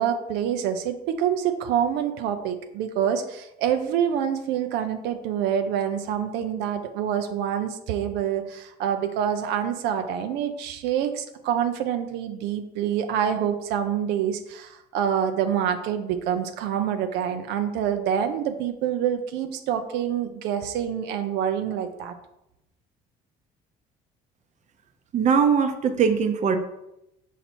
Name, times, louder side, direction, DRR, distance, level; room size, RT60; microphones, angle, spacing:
voice 1, 0.0-22.1, right 9 dB, 85° right, 7 dB, 0.5 m, -26 dB
voice 2, 25.1-26.6, right 6 dB, 45° right, 8 dB, 0.7 m, -21 dB
5.7 x 4.1 x 4.3 m, 0.87 s
cardioid pair, 110°, 17 cm